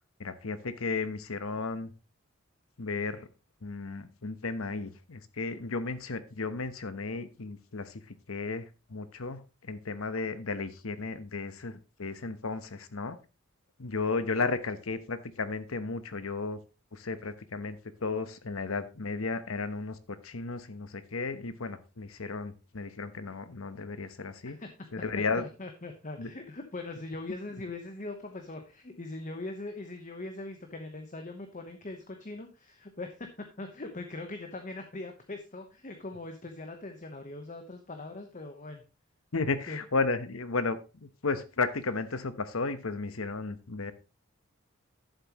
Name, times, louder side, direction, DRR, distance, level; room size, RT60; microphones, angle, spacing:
voice 1, 0.2-1.9 2.8-3.3 3.6-13.2 13.8-16.6 16.9-24.6 24.9-25.5 26.2-26.3 39.3-43.9, left 3 dB, 85° left, 12 dB, 1.0 m, -34 dB
voice 2, 25.4-33.3 33.6-38.8 39.7-39.8, left 2 dB, 40° left, 5 dB, 1.0 m, -41 dB
11.0 x 7.7 x 3.0 m, 0.30 s
head